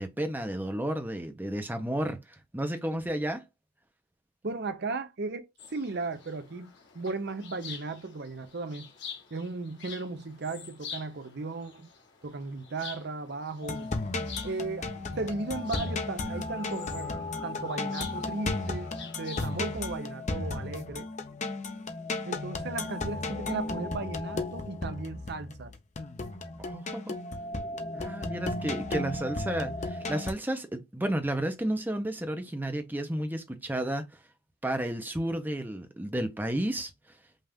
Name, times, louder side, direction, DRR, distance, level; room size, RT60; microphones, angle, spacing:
voice 1, 0.0-3.5 26.7-27.2 27.9-34.1 34.6-36.9, right 1 dB, 10° right, 0.6 m, -32 dB
voice 2, 4.4-8.9 9.3-11.9 12.2-13.9 14.4-21.1 22.3-25.7, right 3 dB, 50° right, 0.6 m, -36 dB
sound 1, 5.6-19.9, left 6 dB, 55° left, 1.2 m, -47 dB
sound 2, 13.6-30.3, left 2 dB, 30° left, 0.6 m, -34 dB
5.4 x 2.4 x 3.5 m
head